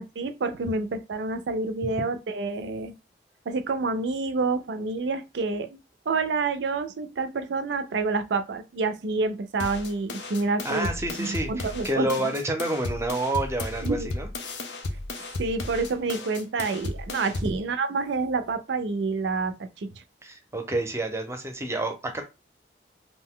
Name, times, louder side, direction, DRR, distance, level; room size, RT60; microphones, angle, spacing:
voice 1, 0.0-2.9 3.5-5.8 6.1-10.9 11.2-12.3 13.8-14.1 15.4-19.9, right 3 dB, 75° right, 0.4 m, -28 dB
sound 1, 9.6-17.6, left 2 dB, 80° left, 0.5 m, -34 dB
voice 2, 10.6-14.3 17.4-17.6 20.2-22.2, right 1 dB, 15° right, 0.6 m, -29 dB
2.6 x 2.1 x 3.6 m
head